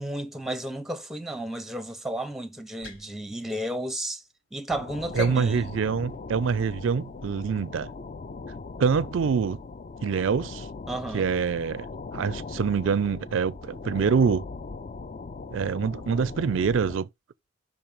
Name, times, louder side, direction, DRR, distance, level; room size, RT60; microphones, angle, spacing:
voice 1, 0.0-4.2 4.5-5.7 10.9-11.3, right 1 dB, ahead, 0.7 m, -33 dB
sound 1, 2.6-4.3 4.5-4.8 5.1-7.7, left 5 dB, 80° left, 1.9 m, -48 dB
sound 2, 4.7-17.0, left 3 dB, 40° left, 0.4 m, -39 dB
voice 2, 5.1-7.9 8.8-9.6 10.0-10.7 11.1-11.9 12.1-14.4 15.5-17.1, right 6 dB, 70° right, 0.4 m, -25 dB
5.5 x 4.4 x 5.3 m
head